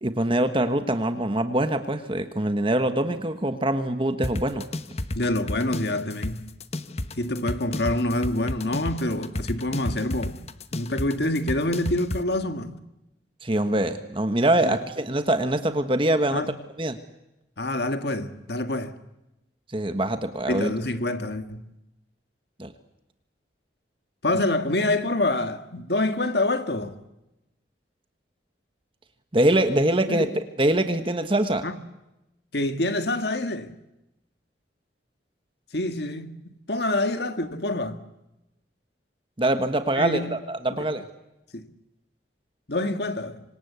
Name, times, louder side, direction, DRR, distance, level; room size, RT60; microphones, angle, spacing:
voice 1, 0.0-4.6 13.4-16.5 16.8-17.0 19.7-20.7 22.6-22.7 29.3-30.3 30.6-31.6 39.4-41.0, right 1 dB, 30° right, 1.4 m, -24 dB
sound 1, 4.2-12.2, left 1 dB, 35° left, 1.1 m, -31 dB
voice 2, 5.1-6.5 7.2-10.4 10.7-12.8 14.6-14.8 16.3-16.5 17.6-19.0 20.5-21.7 24.2-27.0 30.1-30.3 31.6-31.8 32.5-33.8 35.7-36.4 36.7-38.0 40.0-40.4 40.7-40.8 41.5-41.7 42.7-43.4, left 1 dB, 60° left, 1.9 m, -26 dB
26.0 x 26.0 x 8.2 m
head